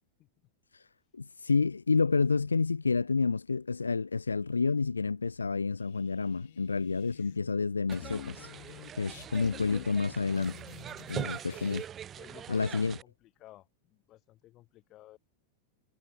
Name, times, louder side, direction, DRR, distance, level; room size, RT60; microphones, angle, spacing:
voice 1, 1.1-8.5 8.9-10.6 11.1-11.8 12.5-12.9, left 4 dB, 75° left, 0.4 m, -29 dB
sound 1, 5.8-7.5 7.8-11.9, left 15 dB, 55° left, 4.9 m, -48 dB
sound 2, 7.9-13.0, right 9 dB, 25° right, 1.2 m, -42 dB
voice 2, 12.1-15.2, left 15 dB, 35° left, 4.8 m, -55 dB
figure-of-eight pair, 90°, 0 cm